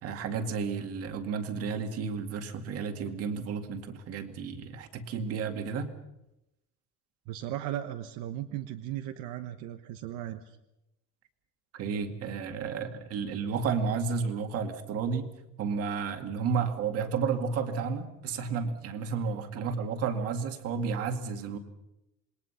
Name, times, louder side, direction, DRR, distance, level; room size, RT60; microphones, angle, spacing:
voice 1, 0.0-5.9 11.7-15.3 15.6-21.6, right 5 dB, 50° right, 6 dB, 2.3 m, -32 dB
voice 2, 7.3-10.6, right 12 dB, 80° right, 7 dB, 1.3 m, -37 dB
27.5 x 21.5 x 5.8 m, 0.90 s
cardioid pair, 170°, 30 cm